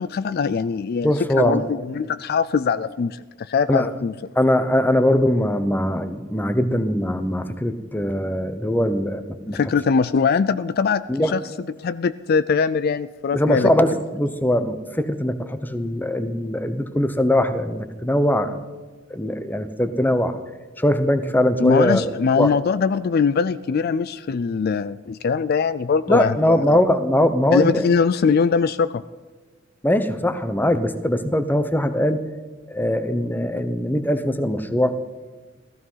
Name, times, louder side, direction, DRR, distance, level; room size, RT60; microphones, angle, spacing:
voice 1, 0.0-1.1 1.4-4.1 9.5-11.4 11.8-13.7 21.6-26.8 27.5-29.0, left 5 dB, 50° left, 15 dB, 0.4 m, -21 dB
voice 2, 1.0-1.6 3.7-3.9 4.4-9.6 11.1-11.3 13.3-18.6 19.1-20.4 20.8-22.1 22.4-22.5 26.1-27.9 29.8-32.2 32.7-35.0, left 1 dB, 10° left, 11 dB, 0.8 m, -21 dB
15.5 x 14.5 x 5.6 m, 1.3 s
head